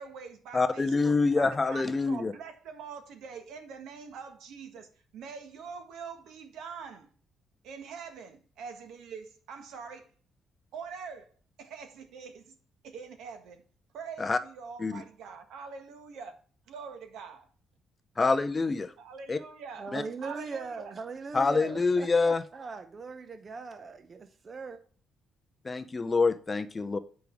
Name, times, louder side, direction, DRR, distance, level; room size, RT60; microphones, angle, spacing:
voice 1, 0.0-7.1 7.6-10.1 10.7-11.3 11.6-12.6 12.8-13.6 13.9-16.4 16.7-17.5 19.0-19.9 20.2-20.9, right 6 dB, 85° right, 1.6 m, -44 dB
voice 2, 0.5-2.3 14.2-14.4 14.8-15.0 18.2-18.9 19.3-19.4 19.9-20.0 21.3-22.4 25.6-27.0, left 3 dB, 20° left, 0.5 m, -26 dB
voice 3, 19.8-24.8, right 4 dB, 30° right, 0.6 m, -40 dB
8.7 x 5.2 x 4.6 m
cardioid pair, 170°, 0 cm